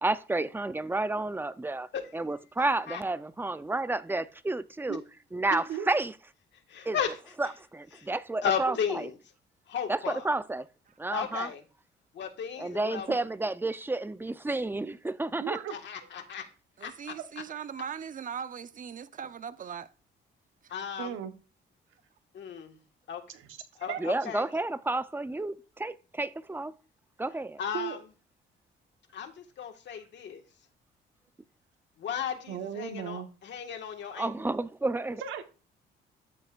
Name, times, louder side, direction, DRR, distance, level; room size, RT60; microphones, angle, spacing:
voice 1, 0.0-5.0 5.3-6.1 6.8-7.0 7.4-9.1 9.9-10.7 11.0-11.5 12.6-15.6 24.0-26.7 27.2-27.6 34.2-35.2, right 2 dB, 10° right, 0.6 m, -31 dB
voice 2, 5.5-5.9 8.7-8.8 15.4-15.8 17.1-17.2 21.0-21.3 23.3-24.1 27.7-28.0 32.5-33.3 35.2-35.4, right 9 dB, 85° right, 1.2 m, -36 dB
voice 3, 6.7-7.2 8.0-8.1 8.4-9.1 9.7-10.2 11.1-11.6 12.1-13.1 15.7-16.5 16.8-17.1 20.7-21.2 22.3-22.8 23.1-23.2 23.8-24.5 27.6-28.0 29.1-30.4 32.0-34.3, left 8 dB, 65° left, 1.7 m, -35 dB
voice 4, 16.8-19.9, right 7 dB, 40° right, 0.8 m, -39 dB
12.5 x 7.8 x 2.5 m
cardioid pair, 90°, 20 cm